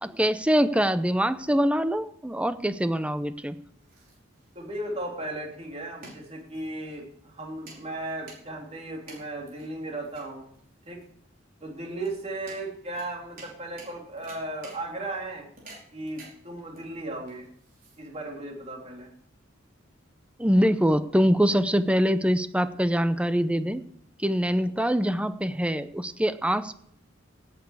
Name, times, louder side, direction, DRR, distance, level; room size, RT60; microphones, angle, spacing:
voice 1, 0.0-3.5 20.4-23.8 24.2-26.7, equal, 5° right, 12 dB, 0.6 m, -24 dB
sound 1, 3.5-18.4, right 3 dB, 50° right, 4.9 m, -52 dB
voice 2, 4.5-10.5 10.9-11.0 11.6-15.5 15.9-17.5 18.0-19.1, right 2 dB, 35° right, 0 dB, 3.1 m, -36 dB
17.5 x 8.4 x 4.8 m, 0.64 s
head